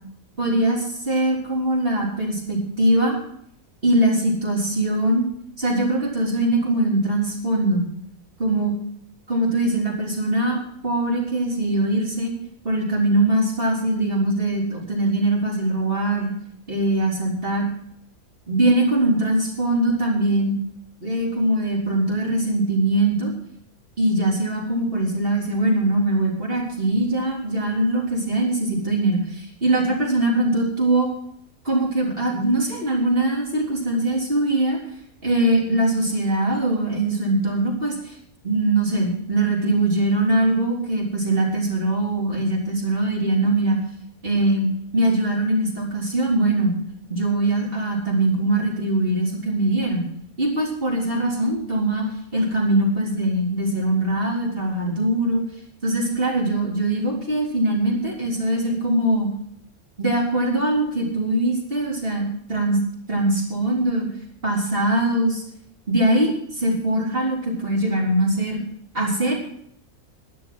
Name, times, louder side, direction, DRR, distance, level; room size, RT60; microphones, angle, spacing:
voice 1, 0.4-3.1 3.8-5.3 5.6-7.9 8.4-8.7 9.3-12.3 12.6-16.3 16.7-17.7 18.5-20.6 21.0-23.3 24.0-31.1 31.6-34.8 35.2-38.1 38.4-43.8 44.2-46.7 47.1-50.1 50.4-52.1 52.3-55.4 55.8-59.3 60.0-62.8 63.1-64.1 64.4-65.4 65.9-68.6 68.9-69.3, right 1 dB, 40° right, -2 dB, 3.9 m, -22 dB
12.5 x 10.5 x 6.1 m, 0.71 s
omnidirectional pair, 1.5 m